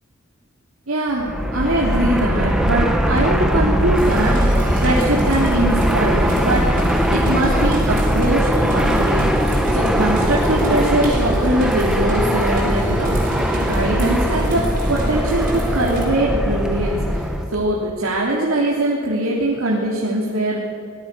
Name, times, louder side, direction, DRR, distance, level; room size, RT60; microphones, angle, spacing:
voice 1, 0.9-6.7 7.1-9.3 9.7-14.6 14.9-17.2 17.5-20.7, right 1 dB, 85° right, -4 dB, 3.2 m, -22 dB
Fixed-wing aircraft airplane, 1.1-17.5, equal, 5° right, 1.8 m, -20 dB
sound 1, 3.9-16.1, right 2 dB, 40° right, 6.6 m, -31 dB
24.0 x 19.0 x 6.9 m, 2.4 s
head